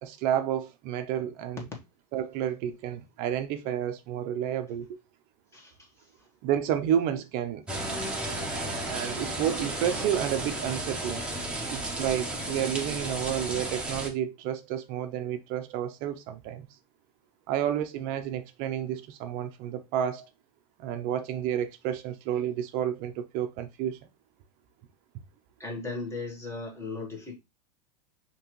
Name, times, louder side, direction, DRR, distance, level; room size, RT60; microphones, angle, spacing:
voice 1, 0.0-1.7 2.1-5.0 6.4-7.6 8.9-11.2 11.7-16.7 17.5-20.3 20.8-24.0, right 10 dB, 45° right, 0.6 m, -30 dB
voice 2, 5.5-5.9 25.6-27.3, left 3 dB, 15° left, 1.6 m, -37 dB
sound 1, 7.7-14.1, right 1 dB, 5° right, 1.1 m, -33 dB
5.5 x 3.0 x 3.1 m
supercardioid pair, 130°, 21 cm